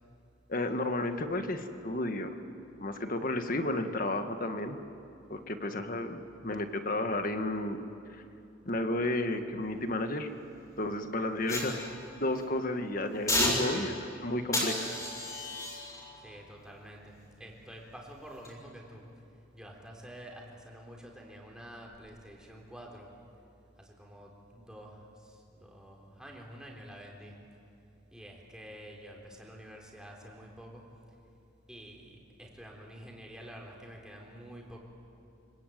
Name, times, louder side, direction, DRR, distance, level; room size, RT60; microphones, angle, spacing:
voice 1, 0.5-2.3 2.8-4.8 5.3-7.8 8.7-10.3 10.8-11.9 12.2-14.9, left 1 dB, 45° left, 7 dB, 1.7 m, -32 dB
sound 1, 11.5-12.5 13.3-14.1 14.5-17.7 18.3-18.5, left 1 dB, 15° left, 6.2 m, -34 dB
voice 2, 16.2-19.1 19.5-23.1 23.8-27.4 28.1-30.9 31.7-34.8, equal, 5° right, -1 dB, 3.9 m, -48 dB
25.5 x 24.5 x 9.3 m, 2.7 s
head